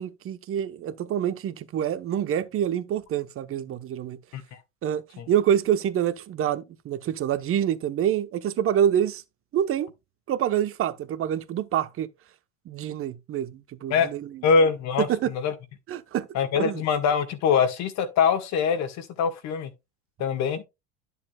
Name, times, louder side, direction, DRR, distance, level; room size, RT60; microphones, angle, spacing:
voice 1, 0.0-4.2 4.8-5.0 5.3-9.2 9.5-9.9 10.3-12.1 12.7-14.3 15.1-15.3 15.9-16.3 16.6-16.8, right 10 dB, 40° right, 1.0 m, -26 dB
voice 2, 14.4-15.5 16.3-19.7 20.2-20.6, left 6 dB, 55° left, 1.7 m, -23 dB
11.0 x 7.0 x 2.3 m
hypercardioid pair, 85°, 33 cm